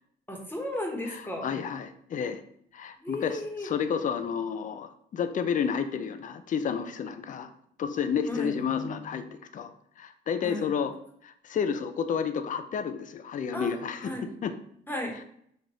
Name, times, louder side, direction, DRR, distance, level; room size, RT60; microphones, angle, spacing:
voice 1, 0.3-1.5 3.0-3.7 8.3-8.5 10.4-10.7 13.5-13.8 14.0-14.3 14.9-15.2, left 1 dB, 10° left, 1 dB, 1.1 m, -34 dB
voice 2, 1.1-2.4 2.7-7.5 7.8-9.3 9.5-9.7 10.0-10.9 11.2-14.1 14.4-14.5, left 7 dB, 40° left, 10 dB, 0.4 m, -31 dB
6.2 x 2.5 x 3.0 m, 0.68 s
cardioid pair, 90°, 20 cm